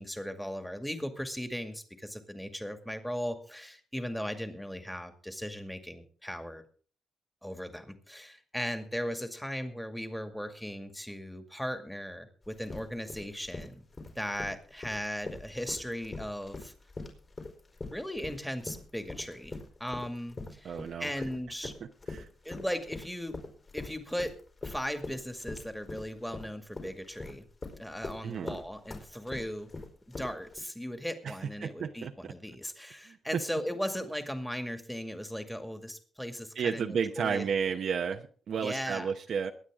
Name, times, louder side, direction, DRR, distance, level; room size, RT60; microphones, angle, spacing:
voice 1, 0.0-6.6 7.4-13.8 14.2-16.7 17.8-21.7 22.4-23.4 23.7-24.4 24.6-27.5 27.8-29.7 30.1-37.5 38.6-39.1, equal, 5° left, 6 dB, 2.2 m, -37 dB
sound 1, 12.4-30.6, left 3 dB, 35° left, 4.5 m, -42 dB
voice 2, 20.6-21.1 22.1-22.3 28.2-28.6 31.2-31.4 31.6-32.3 33.1-33.2 36.6-39.5, right 6 dB, 65° right, 4 dB, 0.9 m, -32 dB
22.5 x 9.4 x 3.7 m, 0.43 s
cardioid pair, 95°, 0 cm